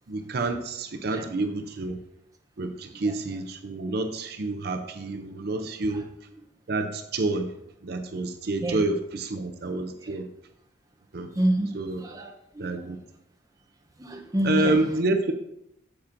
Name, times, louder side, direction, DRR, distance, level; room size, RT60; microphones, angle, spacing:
voice 1, 0.1-2.0 2.6-6.1 6.7-7.5 7.8-10.3 11.1-11.3 11.7-12.0 12.6-13.0 14.4-15.3, right 2 dB, 55° right, 6 dB, 0.5 m, -28 dB
voice 2, 11.4-12.7 14.0-14.8, equal, 15° right, 2 dB, 0.7 m, -28 dB
8.7 x 7.2 x 2.6 m, 0.79 s
head